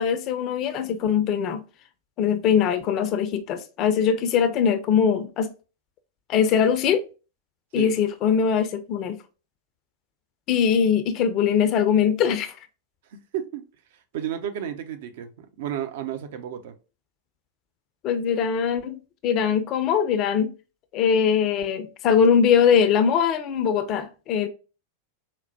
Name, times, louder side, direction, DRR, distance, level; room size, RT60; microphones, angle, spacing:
voice 1, 0.0-1.6 2.2-5.5 6.3-7.0 7.7-9.2 10.5-12.5 18.0-19.0 19.2-20.5 20.9-24.5, left 7 dB, 35° left, 0.4 m, -21 dB
voice 2, 14.1-16.7, right 10 dB, 55° right, 0.5 m, -32 dB
4.2 x 2.0 x 2.7 m
figure-of-eight pair, 90°, 0 cm